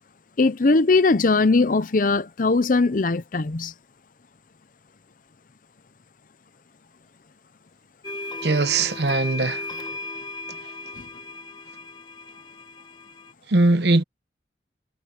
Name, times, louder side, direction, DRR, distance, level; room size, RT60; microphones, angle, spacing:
voice 1, 0.4-3.7 11.0-11.1, left 3 dB, 50° left, 0.6 m, -20 dB
sound 1, 8.0-13.3, left 2 dB, 25° left, 1.1 m, -36 dB
voice 2, 8.4-9.8 13.5-14.0, right 2 dB, 70° right, 1.0 m, -20 dB
head